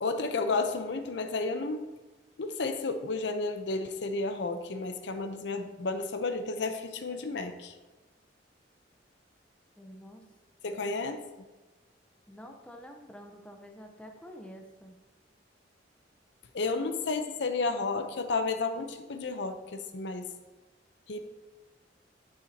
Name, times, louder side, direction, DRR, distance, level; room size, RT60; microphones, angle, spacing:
voice 1, 0.0-1.9 2.4-7.7 10.6-11.2 16.5-20.2 21.1-21.2, left 3 dB, 70° left, 7 dB, 0.7 m, -32 dB
voice 2, 9.8-10.3 10.7-10.9 12.3-14.9, equal, 5° left, 3 dB, 0.7 m, -48 dB
9.1 x 8.2 x 2.8 m, 1.2 s
head